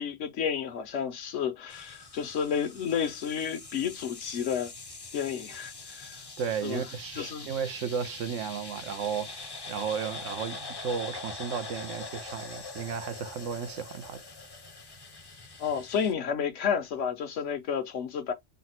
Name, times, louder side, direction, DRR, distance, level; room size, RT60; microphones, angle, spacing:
voice 1, 0.0-4.7 5.1-6.2 6.6-6.9 7.1-7.5 15.6-18.3, left 7 dB, 75° left, 1.2 m, -31 dB
sound 1, 1.7-16.1, left 3 dB, 25° left, 0.6 m, -43 dB
voice 2, 6.4-14.2, right 7 dB, 85° right, 1.1 m, -34 dB
4.1 x 2.1 x 4.1 m
omnidirectional pair, 1.3 m